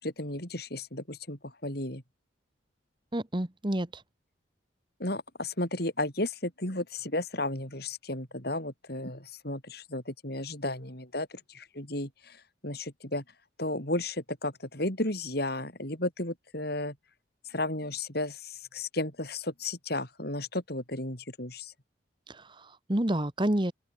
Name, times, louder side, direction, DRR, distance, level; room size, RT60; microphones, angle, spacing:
voice 1, 0.0-2.0 5.0-13.2 13.6-17.0 17.5-21.7, left 2 dB, 50° left, 5.7 m, -34 dB
voice 2, 3.1-4.0 22.3-23.7, right 1 dB, 25° right, 1.3 m, -29 dB
open air
head